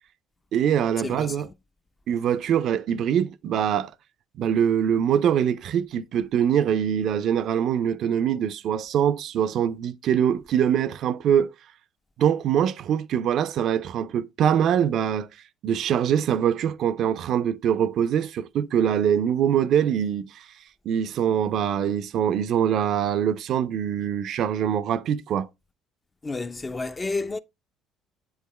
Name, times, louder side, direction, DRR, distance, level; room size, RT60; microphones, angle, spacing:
voice 1, 0.5-1.5 2.1-3.9 4.4-11.5 12.2-15.3 15.6-20.4 20.9-25.5, right 9 dB, 60° right, 0.4 m, -23 dB
voice 2, 1.0-1.5 26.2-27.4, left 3 dB, 25° left, 0.4 m, -30 dB
7.8 x 4.7 x 3.0 m
hypercardioid pair, 60°, 0 cm